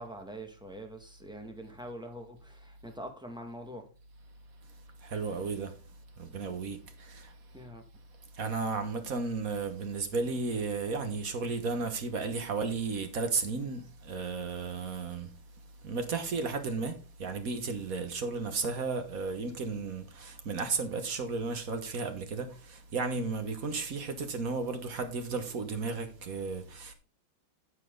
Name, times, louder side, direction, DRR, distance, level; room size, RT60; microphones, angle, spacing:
voice 1, 0.0-3.8 7.5-7.8, right 1 dB, ahead, 1.4 m, -44 dB
voice 2, 5.0-5.7 6.2-7.3 8.4-15.3 15.8-26.9, right 4 dB, 50° right, 1.5 m, -34 dB
9.8 x 7.5 x 3.8 m
omnidirectional pair, 2.2 m